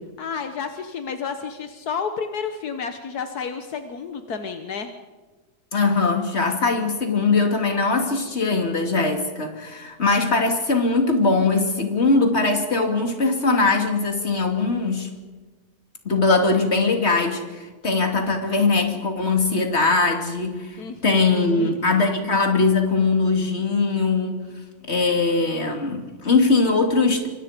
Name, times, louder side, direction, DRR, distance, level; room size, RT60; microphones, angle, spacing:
voice 1, 0.2-4.9 20.8-21.7, left 6 dB, 80° left, 7 dB, 1.7 m, -31 dB
voice 2, 5.7-15.1 16.0-24.4 24.9-27.3, left 3 dB, 45° left, 4 dB, 3.0 m, -21 dB
26.0 x 25.0 x 5.2 m, 1.3 s
omnidirectional pair, 1.6 m